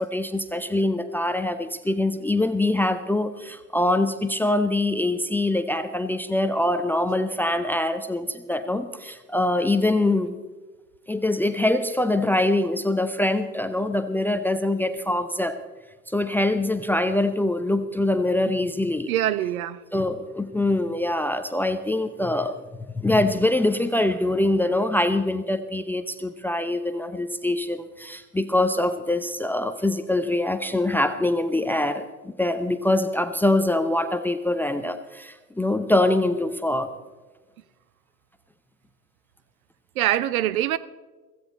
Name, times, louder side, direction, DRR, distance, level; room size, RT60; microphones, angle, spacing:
voice 1, 0.0-10.4 11.1-15.6 16.1-19.1 19.9-22.6 22.9-36.9, left 1 dB, 5° left, 0.6 m, -24 dB
voice 2, 19.1-19.8 40.0-40.8, right 13 dB, 60° right, 0.9 m, -23 dB
16.0 x 15.5 x 4.2 m
hypercardioid pair, 90°, 48 cm